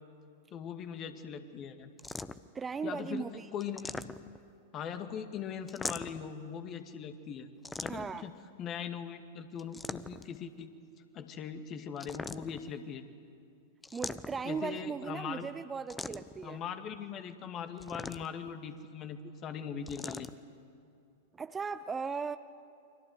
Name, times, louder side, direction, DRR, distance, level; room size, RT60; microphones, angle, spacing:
voice 1, 0.5-1.9 2.8-4.0 4.7-7.5 7.8-8.3 8.6-10.7 11.1-13.1 14.4-15.5 16.4-20.3, left 7 dB, 35° left, 8 dB, 2.1 m, -40 dB
sound 1, 2.0-2.6 3.6-4.5 5.7-6.3 7.6-8.3 9.6-10.4 12.0-12.7 13.8-14.6 15.9-16.4 17.8-18.5 19.9-20.3, left 3 dB, 10° left, 0.8 m, -41 dB
voice 2, 2.5-3.5 7.9-8.2 13.9-16.6 21.4-22.4, right 5 dB, 15° right, 12 dB, 0.7 m, -37 dB
29.5 x 24.0 x 8.1 m, 2.5 s
figure-of-eight pair, 95°, 0 cm